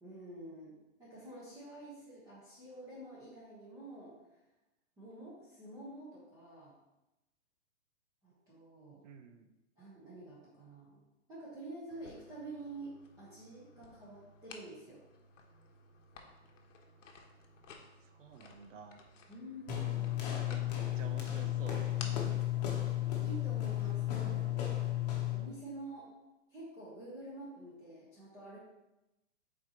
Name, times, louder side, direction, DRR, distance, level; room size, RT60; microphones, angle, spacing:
voice 1, 0.0-4.4 5.0-6.8 8.2-9.0 9.8-11.0 11.3-15.0 19.3-20.2 23.2-24.4 25.3-26.1 26.5-28.6, right 2 dB, 10° right, -10 dB, 1.0 m, -48 dB
voice 2, 9.0-9.5 18.0-19.0 20.5-22.7 24.2-24.7, right 6 dB, 75° right, 7 dB, 0.9 m, -52 dB
sound 1, 11.9-24.4, left 4 dB, 80° left, 1.2 m, -56 dB
sound 2, 19.7-25.5, left 13 dB, 35° left, 1.1 m, -34 dB
7.7 x 4.3 x 3.0 m, 0.95 s
hypercardioid pair, 160°, 37 cm